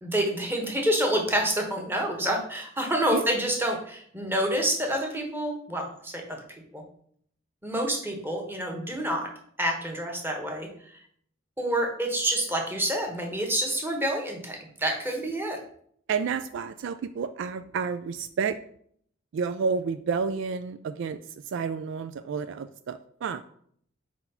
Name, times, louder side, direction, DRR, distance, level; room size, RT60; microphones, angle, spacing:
voice 1, 0.0-6.4 6.7-6.8 7.6-9.3 9.6-10.7 11.6-15.6, right 1 dB, 10° right, 1 dB, 1.2 m, -28 dB
voice 2, 16.1-18.5 19.3-21.2 21.5-23.4, right 5 dB, 65° right, 11 dB, 0.3 m, -30 dB
4.4 x 4.2 x 5.5 m, 0.63 s
head